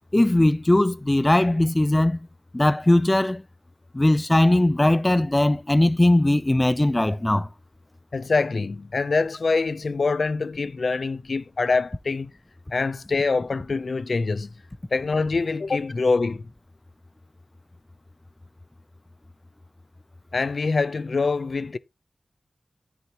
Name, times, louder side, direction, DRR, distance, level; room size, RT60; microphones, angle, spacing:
voice 1, 0.1-2.2 2.5-3.4 3.9-7.5, left 1 dB, 20° left, 0.5 m, -19 dB
voice 2, 8.1-12.3 12.7-14.5 14.9-16.5 20.3-21.8, left 4 dB, 65° left, 0.6 m, -24 dB
13.0 x 7.0 x 3.0 m
wide cardioid pair, 85°, 0 cm